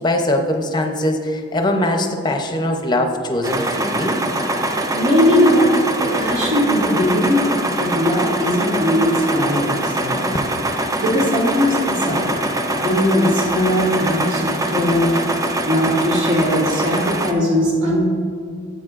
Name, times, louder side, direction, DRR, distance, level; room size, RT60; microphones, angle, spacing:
voice 1, 0.0-4.2, left 1 dB, 20° left, 4 dB, 0.6 m, -21 dB
sound 1, 3.4-17.3, right 1 dB, 15° right, 0.4 m, -23 dB
voice 2, 4.9-5.7 6.0-7.4 7.7-10.2 11.0-12.4 12.7-15.1 15.6-18.1, equal, 75° right, -4 dB, 2.2 m, -19 dB
11.0 x 8.0 x 2.5 m, 2.2 s
head